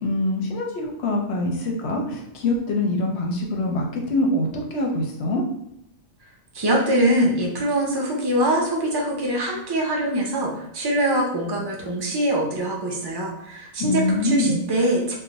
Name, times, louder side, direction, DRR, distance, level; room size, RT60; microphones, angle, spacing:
voice 1, 0.0-5.4 13.8-14.6, left 1 dB, 65° left, 1 dB, 0.8 m, -24 dB
voice 2, 6.5-15.1, right 1 dB, 35° right, -1 dB, 0.4 m, -23 dB
2.4 x 2.1 x 3.9 m, 0.80 s
omnidirectional pair, 1.4 m